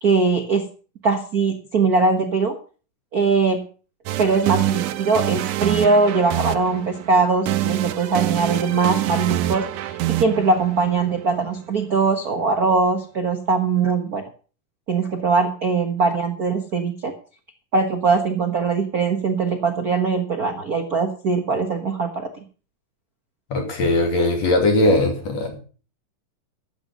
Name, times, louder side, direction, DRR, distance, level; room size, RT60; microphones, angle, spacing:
voice 1, 0.0-0.7 1.0-2.5 3.1-3.6 4.2-14.2 14.9-17.1 17.7-22.4, right 4 dB, 55° right, 5 dB, 1.0 m, -21 dB
sound 1, 4.1-12.0, right 13 dB, 75° right, 2.1 m, -26 dB
voice 2, 23.5-25.6, left 2 dB, 55° left, 3 dB, 3.7 m, -19 dB
13.5 x 9.3 x 5.4 m, 0.38 s
omnidirectional pair, 3.8 m